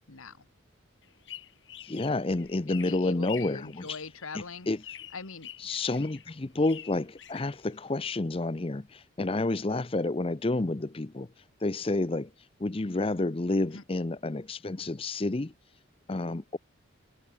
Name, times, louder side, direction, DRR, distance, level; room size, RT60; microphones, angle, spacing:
voice 1, 0.1-0.5 2.7-4.7 5.1-5.5 13.7-13.8, left 4 dB, 90° left, 1.7 m, -42 dB
sound 1, 1.0-8.1, left 11 dB, 60° left, 4.8 m, -47 dB
voice 2, 1.8-4.0 4.3-4.8 5.6-11.3 11.6-12.3 12.6-15.5 16.1-16.6, left 2 dB, 25° left, 0.6 m, -30 dB
head